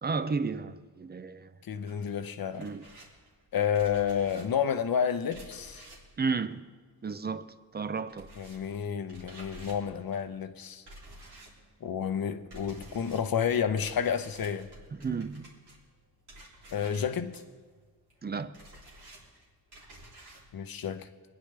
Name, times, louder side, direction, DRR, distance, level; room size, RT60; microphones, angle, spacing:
voice 1, 0.0-1.5 2.6-2.9 6.2-6.7 7.0-8.3 14.9-15.5 18.2-18.5, right 4 dB, 25° right, 0.5 m, -33 dB
voice 2, 1.7-2.7 3.5-5.8 8.4-10.8 11.8-14.7 16.7-17.4 20.5-21.1, left 8 dB, 65° left, 0.8 m, -30 dB
sound 1, 1.9-7.4 7.6-20.5, right 1 dB, 90° right, 3.3 m, -52 dB
24.5 x 10.0 x 3.3 m
wide cardioid pair, 130°, 38 cm